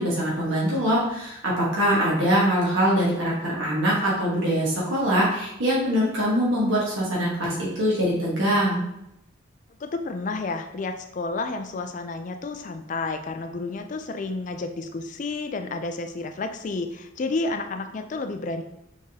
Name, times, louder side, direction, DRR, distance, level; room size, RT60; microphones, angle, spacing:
voice 1, 0.0-8.8, equal, 70° right, -6 dB, 1.3 m, -23 dB
voice 2, 9.8-18.6, left 3 dB, 40° left, 7 dB, 0.3 m, -31 dB
4.7 x 3.5 x 2.8 m, 0.84 s
head